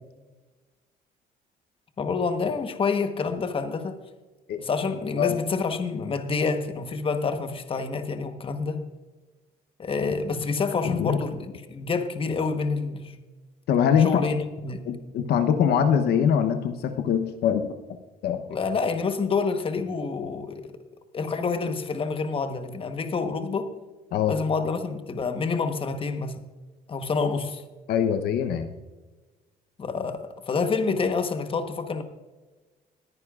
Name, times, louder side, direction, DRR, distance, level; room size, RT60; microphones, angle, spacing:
voice 1, 2.0-4.0 4.6-8.9 9.8-13.2 14.0-14.9 18.5-20.7 21.1-23.7 24.3-26.5 26.9-27.6 29.8-32.0, left 4 dB, 30° left, 8 dB, 1.1 m, -28 dB
voice 2, 13.7-14.2 14.9-17.7 18.2-18.4 24.1-24.3 27.9-28.7, left 8 dB, 70° left, 8 dB, 0.9 m, -23 dB
20.5 x 9.7 x 2.5 m, 1.2 s
cardioid pair, 110°, 17 cm